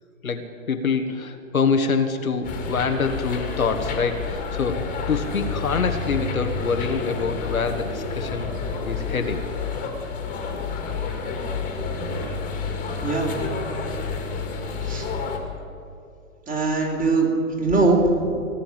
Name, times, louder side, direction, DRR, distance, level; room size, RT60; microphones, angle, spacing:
voice 1, 0.2-8.5 8.9-9.4, left 5 dB, 85° left, 6 dB, 1.4 m, -25 dB
sound 1, 2.4-15.4, left 4 dB, 20° left, 2.0 m, -29 dB
voice 2, 13.0-13.3 14.9-15.1 16.5-17.3 17.6-18.4, right 3 dB, 20° right, -1 dB, 3.0 m, -21 dB
17.5 x 7.1 x 9.1 m, 2.5 s
figure-of-eight pair, 115°, 41 cm